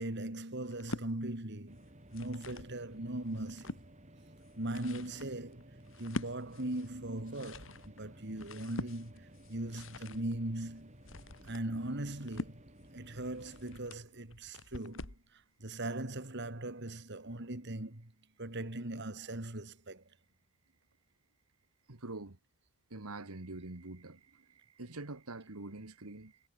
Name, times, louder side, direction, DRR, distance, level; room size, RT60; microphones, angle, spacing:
voice 1, 0.0-1.8 2.1-3.8 4.6-5.7 6.0-10.9 11.5-12.6 12.9-15.1 15.6-18.1 18.4-20.0, right 1 dB, 55° right, 2.6 m, -39 dB
sound 1, 0.6-1.1 1.9-2.8 3.2-3.9 4.4-15.3, left 2 dB, 65° left, 2.5 m, -45 dB
sound 2, 1.7-13.8, right 1 dB, 35° right, 7.4 m, -56 dB
voice 2, 21.9-22.4 22.9-26.4, right 2 dB, 90° right, 1.9 m, -45 dB
head